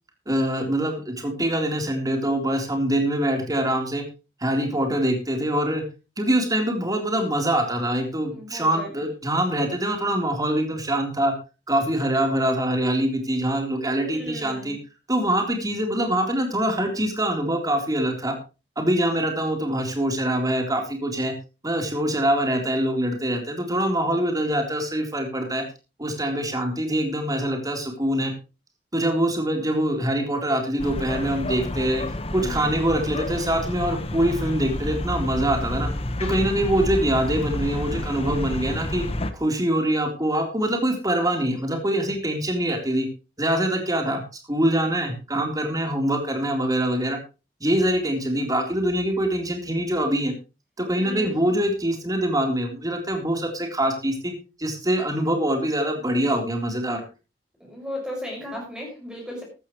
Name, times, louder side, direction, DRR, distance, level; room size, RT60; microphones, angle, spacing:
voice 1, 0.3-4.0 4.4-5.8 6.2-11.3 11.7-14.8 15.1-18.3 18.8-21.3 21.6-25.6 26.0-28.3 28.9-32.0 32.3-35.9 36.2-39.1 39.3-43.1 43.4-44.2 44.5-47.2 47.6-50.3 50.8-54.3 54.6-57.1, right 1 dB, 20° right, 3 dB, 3.8 m, -24 dB
voice 2, 8.3-8.9 14.0-14.8 32.4-32.7 50.9-51.5 57.6-59.4, left 1 dB, 5° right, -2 dB, 6.0 m, -35 dB
sound 1, 30.8-39.3, left 1 dB, 35° left, 1.3 m, -29 dB
14.5 x 13.5 x 3.2 m, 0.30 s
head